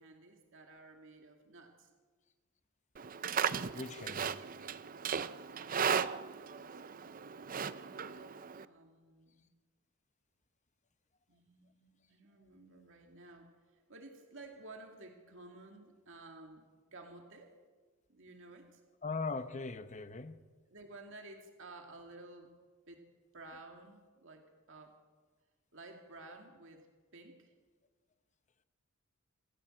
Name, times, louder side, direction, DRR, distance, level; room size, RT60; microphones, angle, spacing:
voice 1, 0.0-1.9 3.6-4.5 5.1-5.5 5.8-9.5 11.3-17.5 18.1-18.8 20.7-22.5 22.9-23.0 23.3-24.9 25.7-27.5, right 2 dB, 60° right, 3 dB, 2.4 m, -54 dB
Livestock farm animals working animals, 3.0-8.7, right 7 dB, 40° right, 0.5 m, -36 dB
voice 2, 3.7-4.3 19.0-20.3, left 4 dB, 30° left, 11 dB, 1.0 m, -39 dB
27.0 x 15.0 x 7.8 m, 1.4 s
head